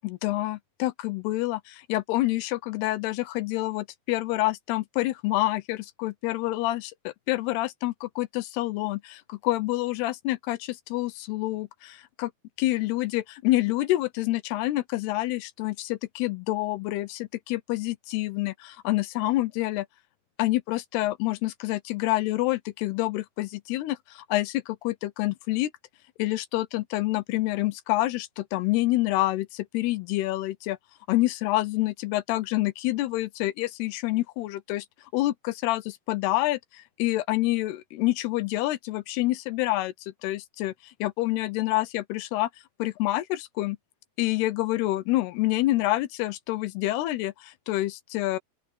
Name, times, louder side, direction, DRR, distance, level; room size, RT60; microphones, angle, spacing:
voice 1, 0.0-12.3 12.6-19.9 20.4-25.7 26.2-30.8 31.1-34.9 35.1-42.5 42.8-43.8 44.2-48.4, left 17 dB, 80° left, 2.8 m, -27 dB
open air
omnidirectional pair, 4.7 m